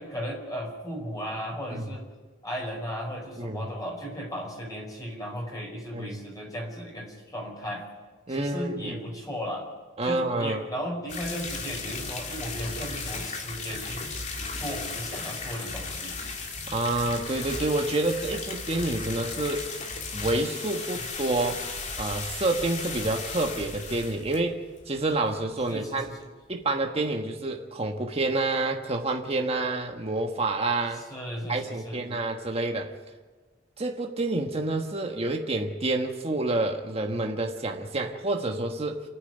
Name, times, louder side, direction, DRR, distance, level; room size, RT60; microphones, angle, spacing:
voice 1, 0.0-2.0 2.4-7.8 8.3-9.7 10.0-16.2 25.7-26.3 30.9-32.1, equal, 20° left, -2 dB, 5.1 m, -36 dB
voice 2, 8.3-9.0 10.0-10.7 16.7-19.7 20.1-21.7 22.0-26.1 26.5-31.0 31.5-32.9 33.8-39.0, right 2 dB, 30° right, 3 dB, 1.5 m, -28 dB
sound 1, 11.1-25.4 25.7-25.8 26.0-26.1 26.6-26.7, left 4 dB, 40° left, 2.6 m, -36 dB
29.0 x 9.6 x 9.5 m, 1.3 s
head